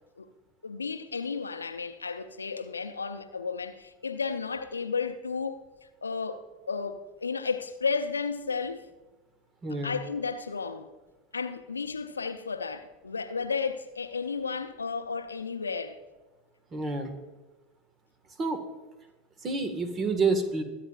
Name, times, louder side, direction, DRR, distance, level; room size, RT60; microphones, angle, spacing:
voice 1, 0.6-5.7 6.0-8.9 9.7-10.9 11.3-16.0, left 5 dB, 85° left, 0.6 m, -33 dB
voice 2, 9.6-9.9 16.7-17.1 18.4-18.6 19.4-20.6, right 3 dB, 30° right, 1.6 m, -28 dB
22.0 x 8.8 x 2.5 m
figure-of-eight pair, 80°, 0 cm